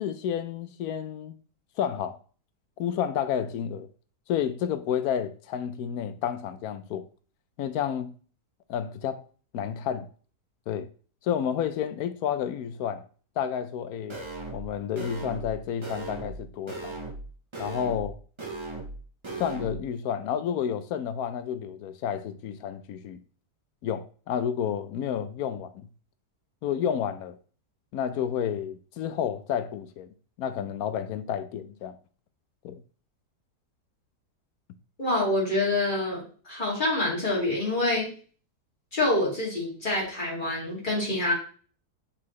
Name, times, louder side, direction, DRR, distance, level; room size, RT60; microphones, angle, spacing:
voice 1, 0.0-1.3 1.8-2.2 2.8-3.9 4.3-7.1 7.6-8.1 8.7-9.2 9.5-10.1 10.7-10.9 11.2-13.0 13.4-14.2 14.5-17.0 17.6-18.2 19.4-23.2 23.8-25.8 26.6-27.4 27.9-30.1 30.4-32.0 32.6-32.8, left 8 dB, 75° left, 1.0 m, -30 dB
sound 1, 14.1-14.7 15.0-15.5 15.8-16.4 16.7-17.2 17.5-18.1 18.4-19.0 19.2-19.7, right 2 dB, 20° right, 0.8 m, -37 dB
voice 2, 35.0-36.2 36.5-38.1 38.9-41.3, left 2 dB, 30° left, 2.6 m, -26 dB
7.5 x 4.2 x 3.1 m
omnidirectional pair, 1.7 m